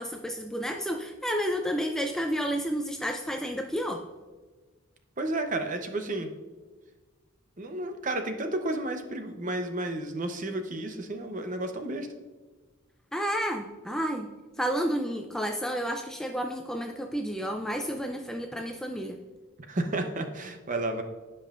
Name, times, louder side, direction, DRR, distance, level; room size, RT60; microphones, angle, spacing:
voice 1, 0.0-4.0 13.1-19.2, equal, ahead, 4 dB, 0.3 m, -31 dB
voice 2, 5.2-6.3 7.6-12.1 19.7-21.0, right 2 dB, 35° right, 6 dB, 0.7 m, -32 dB
16.0 x 5.4 x 2.5 m, 1.3 s
head